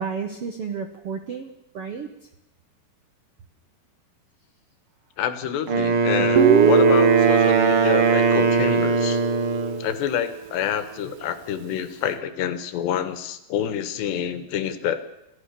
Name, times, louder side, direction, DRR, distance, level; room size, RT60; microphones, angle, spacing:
voice 1, 0.0-2.1 6.2-6.3, right 6 dB, 70° right, 7 dB, 1.3 m, -32 dB
voice 2, 5.2-9.2 9.8-15.0, left 9 dB, 90° left, 11 dB, 3.7 m, -27 dB
Wind instrument woodwind instrument, 5.7-9.8, right 4 dB, 40° right, 2.2 m, -21 dB
Guitar, 6.4-10.3, right 7 dB, 85° right, 1.3 m, -21 dB
28.5 x 16.0 x 6.9 m, 0.86 s
omnidirectional pair, 4.8 m